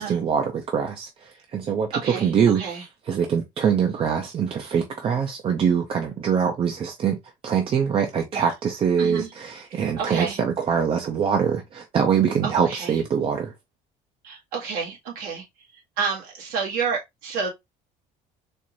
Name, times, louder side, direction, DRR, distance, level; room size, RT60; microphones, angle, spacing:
voice 1, 0.0-1.9 2.2-2.6 3.1-7.2 7.4-13.5, right 7 dB, 35° right, 0.6 m, -23 dB
voice 2, 1.9-2.9 8.3-8.4 9.0-9.3 10.0-10.4 12.4-13.0 14.2-15.5 16.0-17.5, right 6 dB, 80° right, 1.9 m, -29 dB
4.3 x 2.6 x 3.0 m
cardioid pair, 130°, 16 cm